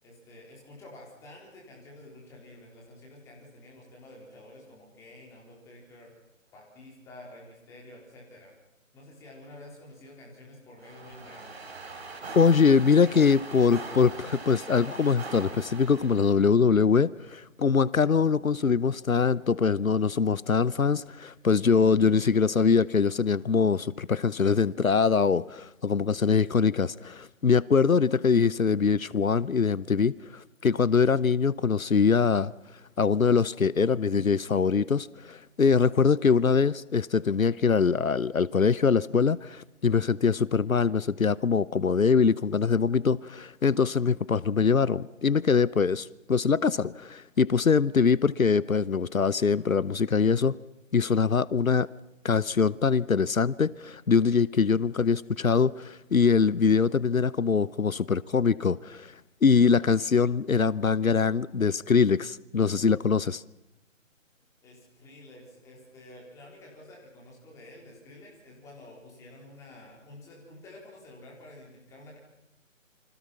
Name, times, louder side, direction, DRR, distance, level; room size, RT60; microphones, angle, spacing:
voice 1, 0.0-6.1 6.5-8.5 8.9-11.7 64.6-72.2, left 1 dB, 5° left, 4.0 m, -49 dB
sound 1, 10.8-16.5, right 3 dB, 50° right, 5.9 m, -41 dB
voice 2, 12.4-32.5 33.0-50.6 50.9-51.9 52.2-59.1 59.4-63.4, left 5 dB, 85° left, 0.8 m, -23 dB
29.0 x 25.0 x 5.8 m
figure-of-eight pair, 155°, 40 cm